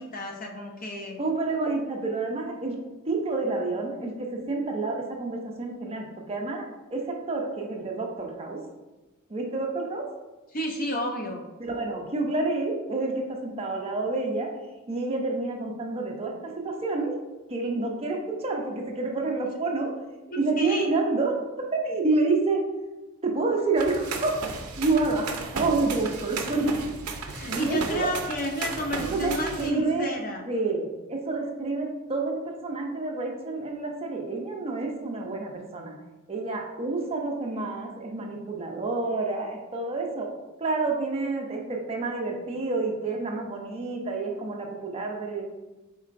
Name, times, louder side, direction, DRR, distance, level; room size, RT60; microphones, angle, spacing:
voice 1, 0.0-1.2 10.5-11.4 20.3-20.9 27.3-30.4, equal, 40° left, 1 dB, 0.6 m, -31 dB
voice 2, 1.2-2.8 3.1-6.6 6.9-8.6 9.3-10.0 11.6-14.5 14.9-17.1 17.5-19.9 20.4-21.4 21.7-22.6 23.2-24.3 24.8-26.7 27.5-28.1 29.1-29.3 29.6-30.2 30.5-36.0 36.3-40.3 40.6-45.4, right 3 dB, 25° right, 1 dB, 0.5 m, -28 dB
sound 1, 23.8-29.7, right 4 dB, 90° right, 0.5 m, -35 dB
4.2 x 3.7 x 2.5 m, 1.1 s
head